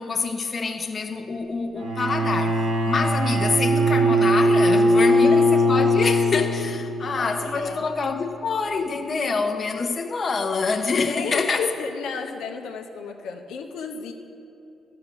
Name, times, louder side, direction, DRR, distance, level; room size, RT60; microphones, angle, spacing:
voice 1, 0.0-11.7, left 4 dB, 40° left, 1.0 m, -26 dB
Bowed string instrument, 1.8-7.0, equal, 80° right, 1.4 m, -20 dB
voice 2, 5.0-5.4 7.0-7.8 11.1-14.1, left 5 dB, 85° left, 0.9 m, -32 dB
12.0 x 6.6 x 8.2 m
cardioid pair, 90°, 0 cm